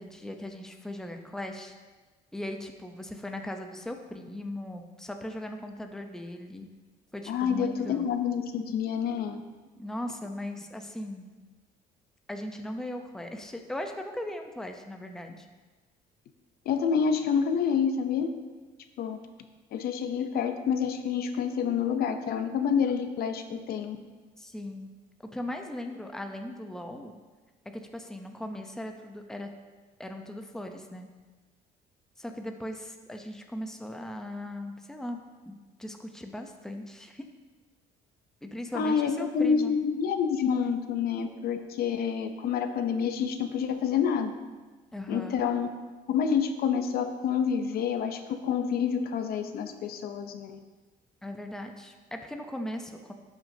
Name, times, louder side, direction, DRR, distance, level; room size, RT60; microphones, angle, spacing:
voice 1, 0.0-1.7 2.3-6.7 7.1-8.1 9.8-11.3 12.3-15.5 24.4-24.9 25.2-27.1 27.7-29.5 30.0-31.1 32.2-35.2 35.5-37.2 38.4-39.7 44.9-45.4 51.2-53.1, left 1 dB, 5° left, 4 dB, 0.7 m, -38 dB
voice 2, 7.3-9.4 16.7-18.3 19.0-19.3 19.7-24.0 38.7-44.3 45.1-45.7 46.1-50.6, left 7 dB, 65° left, 7 dB, 0.7 m, -28 dB
11.5 x 6.2 x 2.8 m, 1.3 s
cardioid pair, 110°, 17 cm